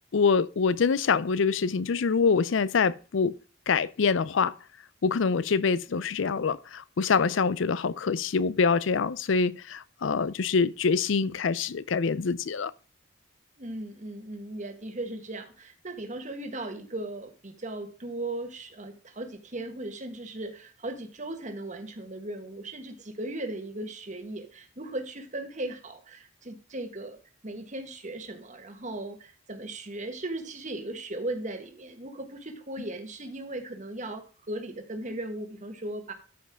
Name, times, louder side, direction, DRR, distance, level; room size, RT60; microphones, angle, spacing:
voice 1, 0.1-3.4 3.7-4.5 5.0-12.7, left 5 dB, 65° left, 0.5 m, -25 dB
voice 2, 13.6-27.2 27.4-36.1, right 1 dB, 35° right, 1.5 m, -37 dB
13.0 x 5.5 x 3.6 m
head